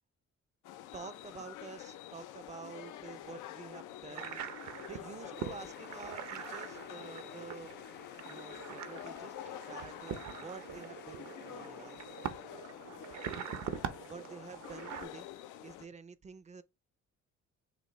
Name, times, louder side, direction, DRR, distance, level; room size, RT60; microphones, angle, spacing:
sound 1, 0.6-15.9, left 12 dB, 90° left, 0.6 m, -48 dB
voice 1, 0.9-4.4 4.9-7.7 8.2-12.0 14.1-15.3 15.6-16.6, right 5 dB, 25° right, 0.4 m, -49 dB
sound 2, 4.1-15.0, right 9 dB, 65° right, 0.7 m, -44 dB
sound 3, 5.3-13.6, left 8 dB, 35° left, 0.5 m, -58 dB
6.5 x 2.5 x 3.0 m
cardioid pair, 90°, 30 cm